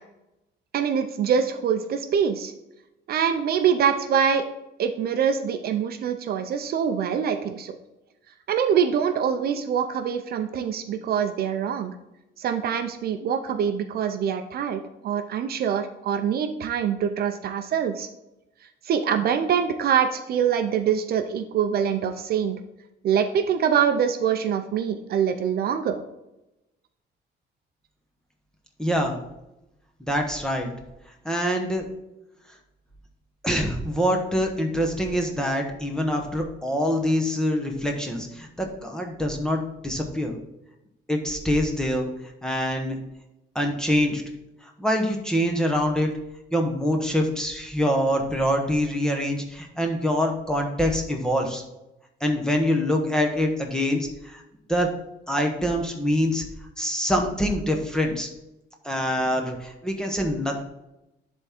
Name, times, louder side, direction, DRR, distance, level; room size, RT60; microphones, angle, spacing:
voice 1, 0.7-2.5 3.1-4.4 4.8-7.7 8.5-11.9 12.4-18.1 18.9-22.6 23.0-26.0, right 8 dB, 55° right, 8 dB, 0.5 m, -24 dB
voice 2, 28.8-29.2 30.0-30.7 31.2-31.8 33.4-40.3 41.1-42.1 42.4-43.0 43.5-44.2 44.8-46.1 46.5-51.6 52.2-54.4 54.7-54.9 55.3-56.4 56.8-58.3 58.8-60.6, equal, 5° left, 2 dB, 0.9 m, -25 dB
10.5 x 3.6 x 4.3 m, 0.92 s
cardioid pair, 170°, 19 cm